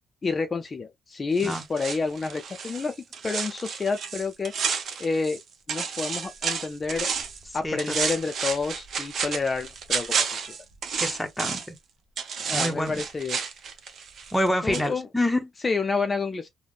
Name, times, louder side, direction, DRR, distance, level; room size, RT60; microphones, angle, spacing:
voice 1, 0.2-3.0 3.2-4.5 5.0-5.4 5.7-7.1 7.5-10.6 12.5-13.4 14.6-15.1 15.6-16.5, left 4 dB, 35° left, 0.4 m, -29 dB
sound 1, 1.4-5.4 5.7-7.4 7.8-11.8 12.2-14.5 14.7-14.9, right 6 dB, 60° right, 0.6 m, -31 dB
voice 2, 11.0-11.8 12.5-13.0 14.3-15.5, left 1 dB, 5° left, 0.8 m, -27 dB
3.4 x 2.1 x 2.3 m
cardioid pair, 90°, 0 cm